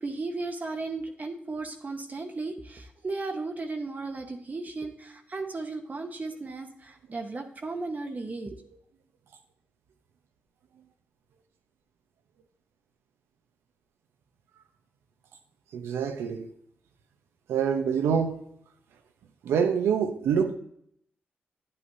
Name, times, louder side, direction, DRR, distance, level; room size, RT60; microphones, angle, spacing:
voice 1, 0.0-8.6, right 3 dB, 40° right, 1.0 m, -35 dB
voice 2, 15.7-16.5 17.5-18.4 19.4-20.6, right 7 dB, 85° right, 0.8 m, -26 dB
9.3 x 8.8 x 2.7 m
supercardioid pair, 50°, 4 cm